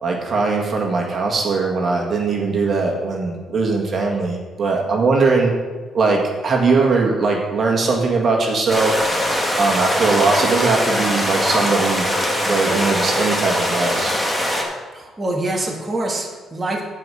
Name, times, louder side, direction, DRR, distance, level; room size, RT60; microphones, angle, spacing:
voice 1, 0.0-5.5 5.9-9.0 9.6-12.1 12.4-14.2, right 4 dB, 50° right, 0 dB, 1.8 m, -20 dB
sound 1, 8.7-14.6, equal, 5° left, 2.2 m, -21 dB
voice 2, 14.9-16.8, right 2 dB, 20° right, -1 dB, 1.8 m, -25 dB
14.5 x 4.9 x 5.6 m, 1.4 s
cardioid pair, 90°, 0 cm